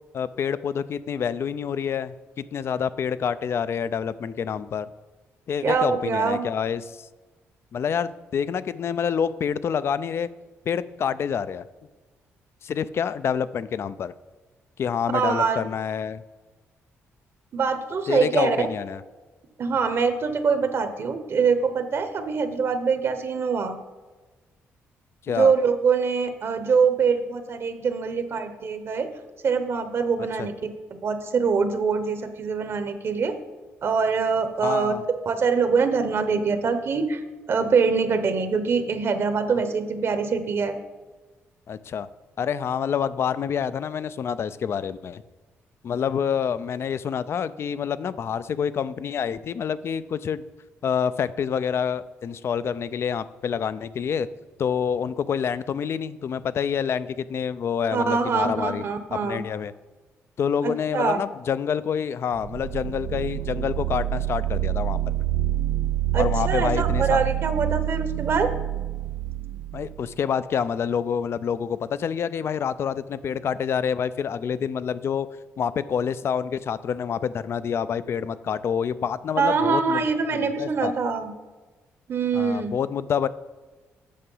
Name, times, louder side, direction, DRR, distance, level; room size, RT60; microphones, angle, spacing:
voice 1, 0.1-4.9 5.5-7.1 7.7-10.3 10.7-11.6 12.6-14.1 14.8-16.2 18.1-19.0 25.2-25.5 30.4-30.5 34.6-35.0 41.7-42.1 42.4-45.2 45.8-50.4 50.8-54.3 54.6-58.8 59.1-59.7 60.4-65.0 66.2-67.2 69.7-75.3 75.6-80.0 80.3-80.9 82.3-83.3, left 7 dB, 55° left, 15 dB, 0.4 m, -27 dB
voice 2, 5.6-6.5 15.1-15.6 17.5-18.7 19.6-23.8 25.3-29.1 29.4-30.5 31.0-33.4 33.8-34.9 35.3-40.8 57.9-59.4 60.6-61.2 66.1-68.5 79.4-81.3 82.1-82.7, right 5 dB, 55° right, 9 dB, 0.9 m, -24 dB
sound 1, 62.3-70.1, right 13 dB, 85° right, 0.4 m, -27 dB
8.5 x 5.9 x 5.5 m, 1.3 s
cardioid pair, 85°, 5 cm